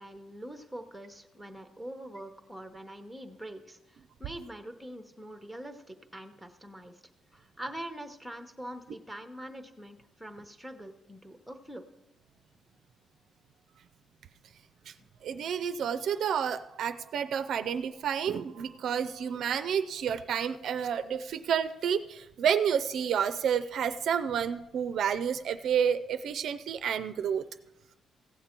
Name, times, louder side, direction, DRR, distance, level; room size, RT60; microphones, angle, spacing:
voice 1, 0.0-7.0 7.3-11.9 15.0-15.1, right 1 dB, ahead, 7 dB, 0.8 m, -44 dB
voice 2, 15.2-27.4, right 8 dB, 55° right, 11 dB, 0.4 m, -30 dB
15.5 x 8.3 x 4.4 m, 0.93 s
cardioid pair, 170°, 0 cm